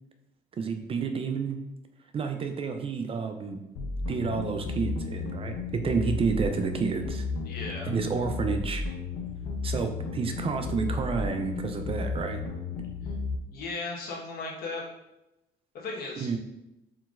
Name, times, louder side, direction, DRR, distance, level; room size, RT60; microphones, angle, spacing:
voice 1, 0.5-1.6 2.1-3.6 4.1-7.3 7.9-8.8 9.6-12.4 16.2-16.4, right 5 dB, 35° right, 6 dB, 0.4 m, -30 dB
sound 1, 3.8-13.4, left 4 dB, 80° left, 0.6 m, -33 dB
voice 2, 7.4-7.9 13.5-14.8 15.7-16.4, left 3 dB, 65° left, -2 dB, 1.2 m, -36 dB
4.5 x 3.8 x 2.4 m, 0.93 s
cardioid pair, 110°, 17 cm